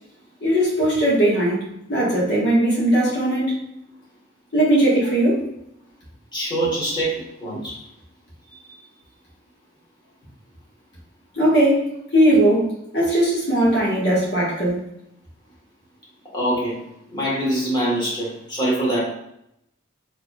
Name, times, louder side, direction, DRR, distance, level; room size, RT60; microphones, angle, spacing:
voice 1, 0.4-3.5 4.5-5.4 11.4-11.9 12.1-12.6 12.9-14.8, right 1 dB, 60° left, -6 dB, 1.2 m, -19 dB
voice 2, 6.3-7.8 16.3-16.8 17.1-19.0, right 1 dB, 25° left, -5 dB, 1.3 m, -24 dB
4.2 x 2.9 x 2.3 m, 0.78 s
head